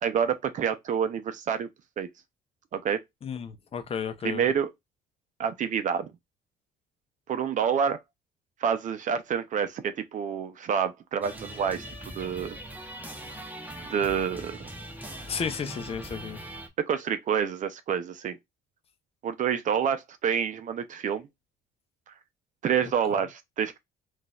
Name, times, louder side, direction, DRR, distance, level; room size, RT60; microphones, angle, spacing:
voice 1, 0.0-1.7 2.0-2.1 2.7-3.0 4.2-4.7 5.4-6.1 7.3-8.0 8.6-11.8 12.1-12.6 13.9-14.7 16.9-18.4 19.2-21.3 22.6-23.8, right 7 dB, 50° right, 0.6 m, -28 dB
voice 2, 3.2-4.5 15.3-16.4, left 6 dB, 35° left, 0.6 m, -33 dB
sound 1, 11.2-16.7, right 1 dB, 10° right, 0.9 m, -41 dB
3.9 x 2.5 x 2.3 m
cardioid pair, 110°, 17 cm